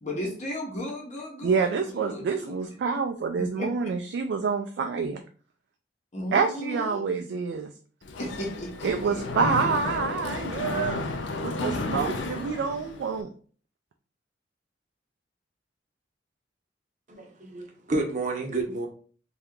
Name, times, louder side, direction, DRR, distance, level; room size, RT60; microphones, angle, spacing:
voice 1, 0.0-2.9 3.4-3.9 6.1-7.1 8.2-9.6 11.6-12.6, equal, 40° left, -1 dB, 0.8 m, -36 dB
voice 2, 1.4-5.2 6.3-7.7 8.8-11.0 11.4-13.3, right 5 dB, 65° right, 5 dB, 0.3 m, -27 dB
Mechanisms, 8.0-13.2, left 2 dB, 80° left, 0.4 m, -33 dB
voice 3, 17.1-18.9, right 2 dB, 45° right, 2 dB, 0.7 m, -30 dB
2.7 x 2.3 x 3.6 m, 0.42 s
head